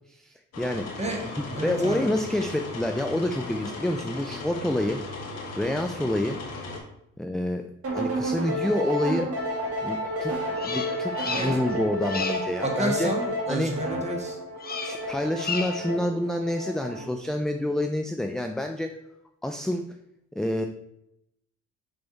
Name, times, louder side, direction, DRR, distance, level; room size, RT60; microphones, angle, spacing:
voice 1, 0.1-0.9 1.2-5.0 5.6-6.4 7.2-7.7 7.9-9.3 9.8-13.1 13.5-13.7 14.8-19.0 19.4-19.9 20.4-20.7, left 1 dB, ahead, 5 dB, 0.4 m, -28 dB
sound 1, 0.5-6.8, left 3 dB, 55° left, 1.5 m, -37 dB
voice 2, 1.5-2.1 11.4-11.5 12.6-14.4, right 1 dB, 20° right, 1 dB, 1.6 m, -30 dB
sound 2, 7.8-17.2, equal, 50° right, 1.4 m, -31 dB
Bird vocalization bird call bird song, 10.6-11.7 12.0-12.5 14.6-15.1 15.4-15.9, left 5 dB, 30° left, 0.7 m, -33 dB
6.9 x 3.5 x 4.0 m, 0.79 s
cardioid pair, 90°, 30 cm